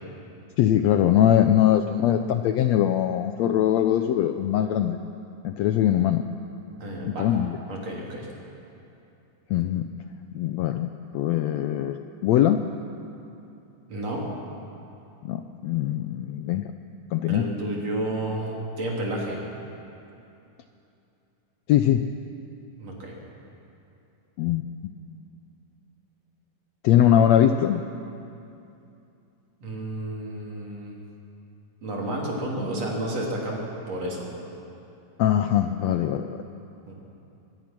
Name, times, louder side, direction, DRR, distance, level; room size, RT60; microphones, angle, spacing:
voice 1, 0.6-5.0 5.4-6.3 7.1-7.6 9.5-9.9 10.3-12.6 15.2-16.7 17.1-17.5 21.7-22.0 24.4-24.9 26.8-27.8 35.2-36.4, left 11 dB, 80° left, 7 dB, 1.5 m, -22 dB
voice 2, 6.8-7.3 7.7-8.3 13.9-14.3 17.3-19.4 22.8-23.2 29.6-31.0 31.8-34.3 36.9-37.0, right 1 dB, 50° right, -2 dB, 4.3 m, -31 dB
24.0 x 21.0 x 6.0 m, 2.8 s
omnidirectional pair, 3.7 m